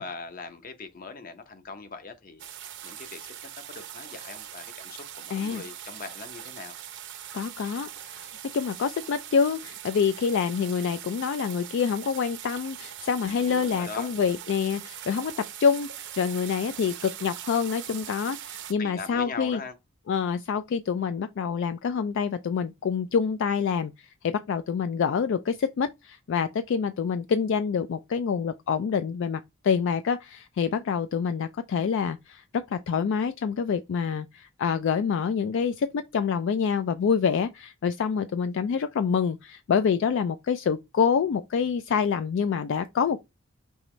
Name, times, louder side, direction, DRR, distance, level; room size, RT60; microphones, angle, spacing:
voice 1, 0.0-2.4 2.8-3.3 3.6-6.8 13.3-14.1 18.8-19.7, left 4 dB, 45° left, 0.8 m, -41 dB
sound 1, 2.4-18.7, right 10 dB, 60° right, 0.6 m, -41 dB
voice 2, 5.3-5.6 7.3-19.6 20.1-43.2, left 6 dB, 65° left, 0.3 m, -27 dB
5.4 x 3.0 x 3.2 m
head